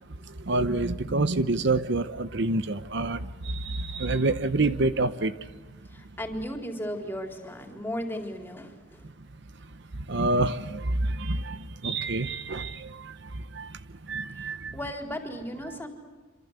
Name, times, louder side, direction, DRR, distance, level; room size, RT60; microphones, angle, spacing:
voice 1, 0.5-3.2 3.4-5.3 10.1-11.6 11.8-13.1 13.5-13.7 14.1-14.7, right 2 dB, 55° right, 13 dB, 0.9 m, -27 dB
voice 2, 5.9-9.0 14.4-15.9, equal, 10° left, 4 dB, 4.1 m, -36 dB
27.0 x 26.5 x 8.2 m, 1.3 s
head